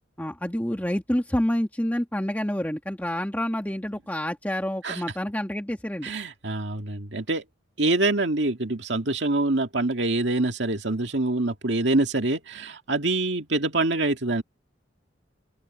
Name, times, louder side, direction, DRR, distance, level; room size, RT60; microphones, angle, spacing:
voice 1, 0.2-6.1, equal, 10° left, 1.6 m, -28 dB
voice 2, 6.0-7.4 7.8-14.4, right 2 dB, 65° right, 2.3 m, -25 dB
open air
head